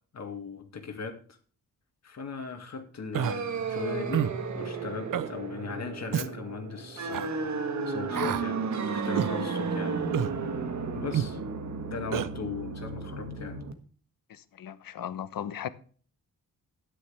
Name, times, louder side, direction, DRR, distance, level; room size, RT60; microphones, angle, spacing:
voice 1, 0.1-1.2 2.0-4.3 4.5-7.5 7.9-10.0 10.3-11.4 11.9-13.6, left 5 dB, 50° left, 2.3 m, -38 dB
Human voice, 3.1-3.4 4.1-4.4 5.1-5.3 6.1-6.3 7.1-7.3 8.1-8.4 9.2-9.3 10.1-10.3 11.1-11.3 12.1-12.3, right 10 dB, 70° right, 0.8 m, -28 dB
sound 1, 3.2-13.7, right 4 dB, 55° right, 1.6 m, -33 dB
voice 2, 14.3-15.7, left 9 dB, 75° left, 1.0 m, -37 dB
12.5 x 10.5 x 3.5 m
wide cardioid pair, 140°, 34 cm